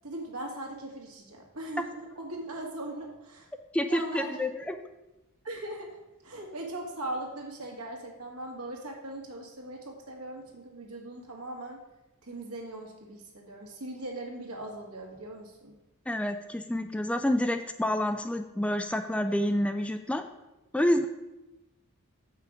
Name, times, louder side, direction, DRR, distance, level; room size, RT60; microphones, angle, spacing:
voice 1, 0.0-3.5 3.8-4.7 5.4-6.0 6.2-11.8 12.2-15.7, right 1 dB, 75° right, 0 dB, 1.8 m, -40 dB
voice 2, 3.7-4.7 16.1-20.2 20.7-21.1, left 1 dB, 5° left, 7 dB, 0.3 m, -28 dB
7.2 x 5.7 x 5.0 m, 1.0 s
head